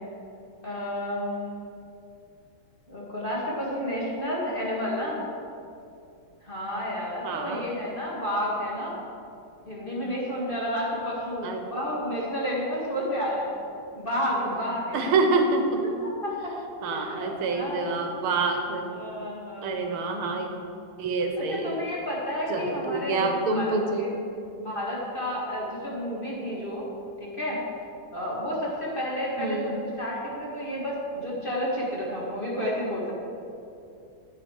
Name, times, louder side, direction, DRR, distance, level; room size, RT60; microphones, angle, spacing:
voice 1, 0.6-1.5 2.9-5.2 6.4-9.0 9.7-13.5 14.0-15.1 16.2-16.5 16.9-17.9 18.9-19.9 21.5-24.1 24.6-26.9 27.2-27.6 28.1-33.1, equal, 25° left, -5 dB, 1.7 m, -31 dB
voice 2, 7.2-7.7 11.4-11.6 14.9-15.8 16.8-18.9 19.6-20.5 21.0-21.8 22.5-24.1 29.4-29.8, right 3 dB, 80° right, 4 dB, 1.8 m, -27 dB
9.6 x 8.6 x 4.4 m, 2.6 s
omnidirectional pair, 2.4 m